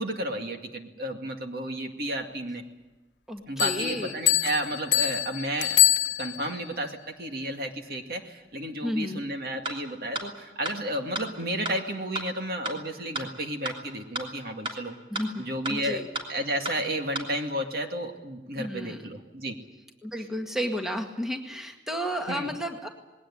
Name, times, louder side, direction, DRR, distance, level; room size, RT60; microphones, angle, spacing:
voice 1, 0.0-2.6 3.5-5.8 6.2-15.0 15.4-16.0 16.3-19.5 22.3-22.5, right 1 dB, 55° right, 4 dB, 2.2 m, -32 dB
voice 2, 3.3-4.1 8.8-9.2 15.1-15.4 15.7-16.1 18.5-19.0 20.0-22.9, equal, 5° right, 3 dB, 1.9 m, -32 dB
sound 1, 3.6-6.6, left 12 dB, 85° left, 0.9 m, -25 dB
sound 2, 9.6-9.7 10.1-10.2 10.7-10.8 11.2-11.3 11.7-11.8 12.2-12.3 12.6-12.7 13.1-13.2 13.7-13.8 14.2-14.3 14.7-14.8 15.1-15.2 15.6-15.8 16.1-16.2 16.7-16.8 17.2-17.3, right 2 dB, 30° right, 3.3 m, -31 dB
20.5 x 18.5 x 10.0 m, 1.1 s
head